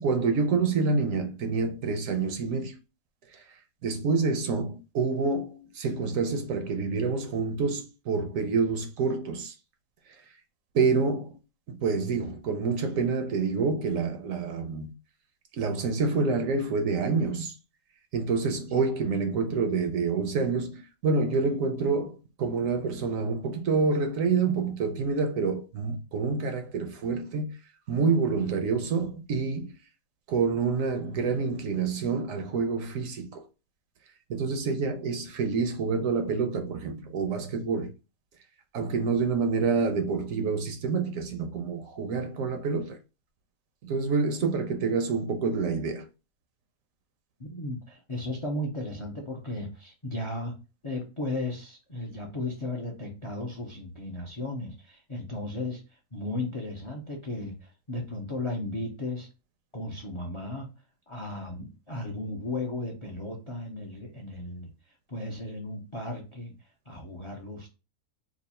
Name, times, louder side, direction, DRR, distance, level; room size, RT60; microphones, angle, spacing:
voice 1, 0.0-2.8 3.8-9.5 10.7-11.4 11.7-14.9 15.5-17.5 18.1-27.5 27.9-29.7 30.3-33.4 34.3-37.9 38.7-43.0 43.8-46.1, right 4 dB, 70° right, 0.9 m, -27 dB
voice 2, 47.4-50.5 50.8-55.8 56.1-59.3 59.7-60.7 61.1-64.7 65.1-67.7, left 2 dB, 40° left, 0.4 m, -35 dB
3.0 x 2.4 x 4.1 m
omnidirectional pair, 1.6 m